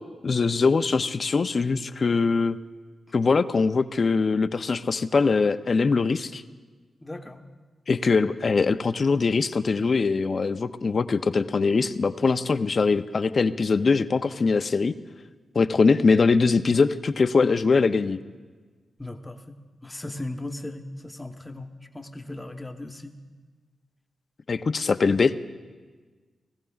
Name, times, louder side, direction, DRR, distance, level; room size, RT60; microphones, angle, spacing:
voice 1, 0.2-2.6 3.1-6.4 7.9-14.9 15.5-18.2 24.5-25.4, left 4 dB, 50° left, 12 dB, 0.4 m, -22 dB
voice 2, 7.0-7.4 19.0-23.2, left 2 dB, 15° left, 6 dB, 0.9 m, -37 dB
20.0 x 14.5 x 2.4 m, 1.4 s
cardioid pair, 70°, 0 cm